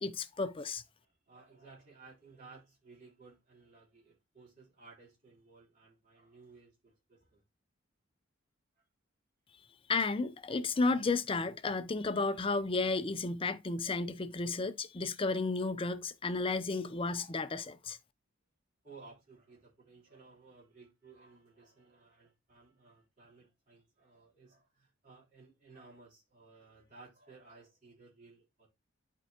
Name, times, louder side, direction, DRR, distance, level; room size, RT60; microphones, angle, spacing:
voice 1, 0.0-0.8 9.9-18.0, left 3 dB, 25° left, 0.5 m, -33 dB
voice 2, 1.0-7.4 18.8-28.7, right 4 dB, 40° right, 3.5 m, -58 dB
11.5 x 4.6 x 2.9 m
head